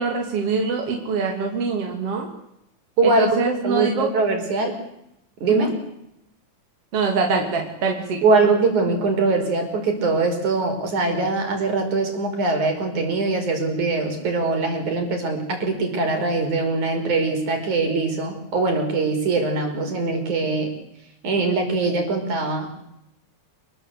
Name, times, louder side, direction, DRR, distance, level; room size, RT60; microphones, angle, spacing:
voice 1, 0.0-2.3 3.0-4.1 5.5-5.7 6.9-8.2, right 4 dB, 50° right, 2 dB, 3.6 m, -24 dB
voice 2, 3.0-3.4 3.6-4.7 5.4-5.7 8.2-20.7 21.2-22.7, right 3 dB, 75° right, 4 dB, 6.5 m, -22 dB
28.0 x 20.5 x 8.4 m, 0.82 s
omnidirectional pair, 3.5 m